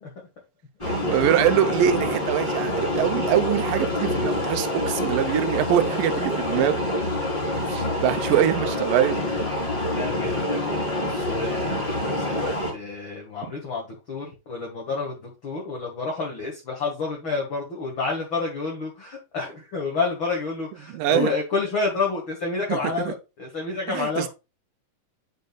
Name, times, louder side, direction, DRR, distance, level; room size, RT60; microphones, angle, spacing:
sound 1, 0.8-12.7, left 1 dB, 10° left, 2.6 m, -26 dB
voice 1, 0.8-6.8 7.6-9.2 20.9-21.3 22.7-23.1 23.9-24.3, right 11 dB, 85° right, 2.5 m, -23 dB
voice 2, 9.9-10.8 11.2-24.3, left 4 dB, 45° left, 2.2 m, -29 dB
9.5 x 5.3 x 2.4 m
omnidirectional pair, 3.9 m